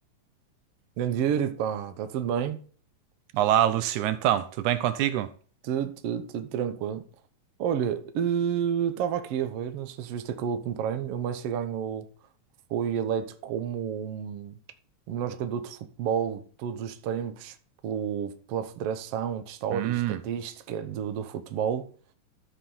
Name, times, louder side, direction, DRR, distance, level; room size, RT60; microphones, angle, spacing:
voice 1, 1.0-2.6 5.6-7.0 7.6-12.1 12.7-14.6 15.1-17.6 17.8-21.9, right 8 dB, 65° right, 1.7 m, -30 dB
voice 2, 3.3-5.3 19.7-20.2, right 12 dB, 85° right, 2.1 m, -25 dB
13.5 x 5.0 x 5.5 m
omnidirectional pair, 3.4 m